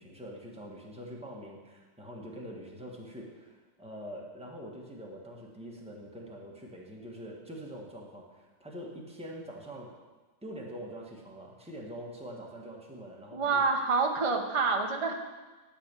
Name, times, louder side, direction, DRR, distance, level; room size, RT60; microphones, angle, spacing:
voice 1, 0.0-9.9 10.4-13.6, equal, 5° right, -3 dB, 1.2 m, -44 dB
voice 2, 13.3-15.1, right 4 dB, 35° right, 3 dB, 0.5 m, -27 dB
12.0 x 4.2 x 6.7 m, 1.2 s
omnidirectional pair, 1.7 m